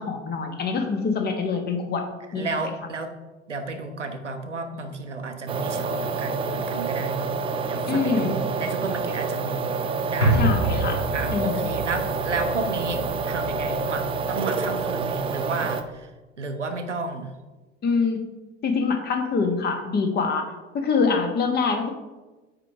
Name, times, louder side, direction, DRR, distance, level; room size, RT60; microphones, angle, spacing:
voice 1, 0.0-2.1 2.3-2.5 7.9-8.4 10.3-11.0 11.3-11.7 17.8-18.2 18.6-21.9, left 5 dB, 30° left, 5 dB, 1.2 m, -25 dB
voice 2, 2.3-3.1 3.5-7.4 7.7-9.8 10.1-10.5 11.1-16.1 16.4-17.4, right 3 dB, 85° right, 7 dB, 0.8 m, -32 dB
sound 1, 5.5-15.8, right 4 dB, 15° right, 0.4 m, -28 dB
sound 2, 10.2-14.7 15.0-15.1, right 1 dB, 90° left, 1.3 m, -27 dB
8.8 x 3.7 x 4.6 m, 1.2 s
figure-of-eight pair, 75°, 35 cm